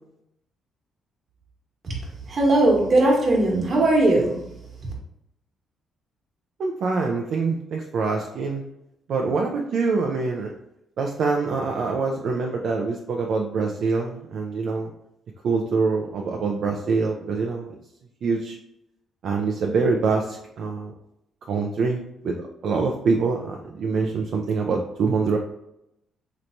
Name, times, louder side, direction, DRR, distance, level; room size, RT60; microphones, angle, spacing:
voice 1, 2.3-4.3, right 2 dB, 45° right, -1 dB, 1.1 m, -18 dB
voice 2, 6.6-8.6 9.1-10.5 11.0-14.9 15.4-17.8 18.2-18.6 19.2-20.9 21.5-25.4, right 4 dB, 65° right, 1 dB, 0.4 m, -25 dB
3.2 x 2.9 x 2.6 m, 0.83 s
cardioid pair, 90°, 0 cm